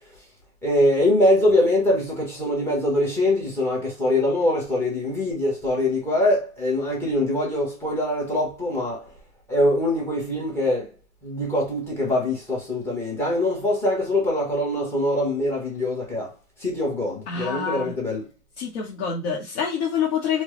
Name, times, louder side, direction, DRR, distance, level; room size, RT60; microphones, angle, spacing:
voice 1, 0.6-9.1 9.5-10.9 11.2-16.3 16.6-18.3, left 1 dB, 5° left, 0.8 m, -23 dB
voice 2, 17.3-17.9 18.6-20.4, left 7 dB, 45° left, 1.0 m, -26 dB
4.5 x 2.1 x 3.0 m
supercardioid pair, 160°, 46 cm